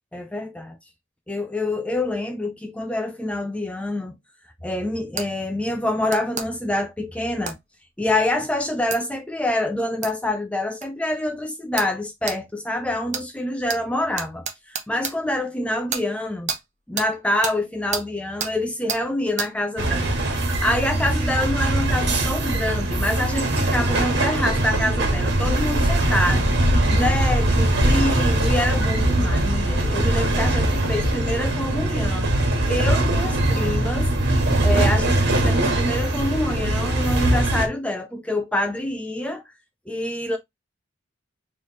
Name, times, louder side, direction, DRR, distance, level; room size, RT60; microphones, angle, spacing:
voice 1, 0.1-0.8 1.3-4.1 4.6-7.6 8.0-16.5 16.9-20.2 20.6-26.5 26.9-32.3 32.7-34.1 34.6-39.4 39.9-40.4, left 1 dB, 5° left, 0.5 m, -26 dB
sound 1, 5.2-5.3 6.1-6.5 7.5-7.6 8.9-9.0 10.0-10.1 10.8-10.9 11.8-11.9 12.3-12.4 13.1-13.3 13.7-13.8 14.2-15.1 15.9-16.0 16.5-16.6 17.0-17.1 17.4-17.6 17.9-18.1 18.4-18.5 18.9-19.0 19.4-19.5, right 6 dB, 35° right, 0.8 m, -29 dB
sound 2, 19.8-37.7, right 1 dB, 55° right, 1.6 m, -21 dB
4.4 x 3.2 x 3.1 m
head